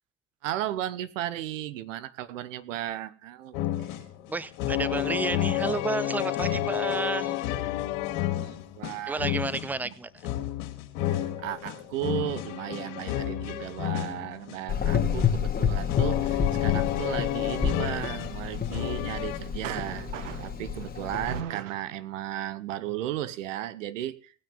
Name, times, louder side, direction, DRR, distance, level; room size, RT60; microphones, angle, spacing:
voice 1, 0.4-4.0 6.4-6.7 8.4-9.3 9.8-9.9 11.1-24.3, right 12 dB, 85° right, 1.0 m, -35 dB
sound 1, 3.5-19.4, left 13 dB, 70° left, 2.5 m, -31 dB
voice 2, 4.3-7.4 9.1-10.3, right 3 dB, 5° right, 0.6 m, -31 dB
Gurgling / Engine, 14.7-21.4, left 7 dB, 25° left, 1.9 m, -29 dB
18.5 x 6.3 x 7.3 m
hypercardioid pair, 90°, 37 cm